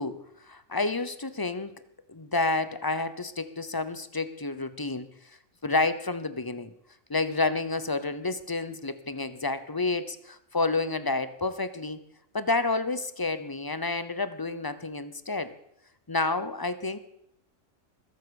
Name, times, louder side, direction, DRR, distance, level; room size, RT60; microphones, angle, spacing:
voice 1, 0.0-1.8 2.1-5.1 5.6-6.7 7.1-12.0 12.3-15.5 16.1-17.0, left 3 dB, 20° left, 13 dB, 0.7 m, -29 dB
21.0 x 8.0 x 7.0 m, 0.77 s
omnidirectional pair, 1.3 m